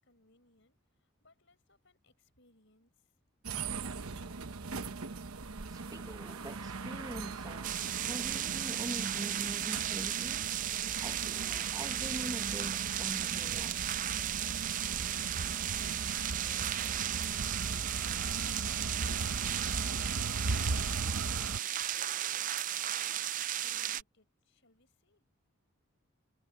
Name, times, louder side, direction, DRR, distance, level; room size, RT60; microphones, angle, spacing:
voice 1, 0.0-3.1 14.8-17.4 18.0-23.1 23.6-25.2, left 2 dB, 55° left, 6.1 m, -68 dB
sound 1, 3.4-21.6, right 3 dB, 80° right, 1.0 m, -39 dB
voice 2, 5.7-13.8, right 1 dB, 15° right, 1.0 m, -43 dB
sound 2, 7.6-24.0, right 12 dB, 35° right, 0.4 m, -35 dB
head